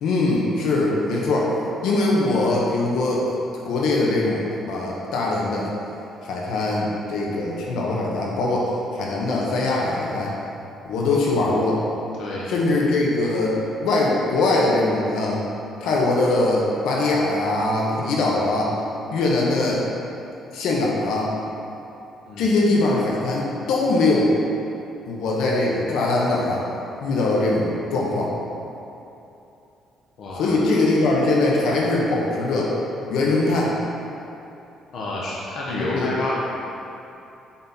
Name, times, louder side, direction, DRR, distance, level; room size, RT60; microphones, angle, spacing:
voice 1, 0.0-1.5 1.8-3.3 3.6-5.7 6.2-10.3 10.8-11.8 12.5-15.4 15.8-18.7 19.1-19.8 20.5-21.3 22.4-24.3 25.1-26.6 27.0-28.3 30.4-32.7 33.1-33.7 35.7-36.1, left 2 dB, 75° left, -3 dB, 1.2 m, -22 dB
voice 2, 30.2-30.6 34.9-36.3, left 2 dB, 50° left, -6 dB, 1.0 m, -29 dB
7.9 x 4.3 x 4.1 m, 2.8 s
cardioid pair, 170°, 0 cm